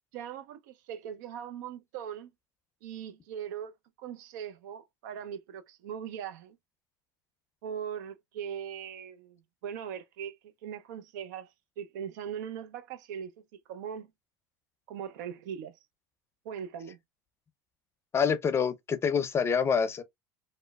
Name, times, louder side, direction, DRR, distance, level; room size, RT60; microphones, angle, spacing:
voice 1, 0.1-2.3 2.8-6.6 7.6-10.4 10.6-11.5 11.8-14.1 14.9-15.8 16.4-17.0, right 8 dB, 80° right, 0.5 m, -40 dB
voice 2, 18.1-20.0, left 6 dB, 25° left, 0.5 m, -26 dB
3.0 x 2.0 x 2.2 m
supercardioid pair, 105°, 10 cm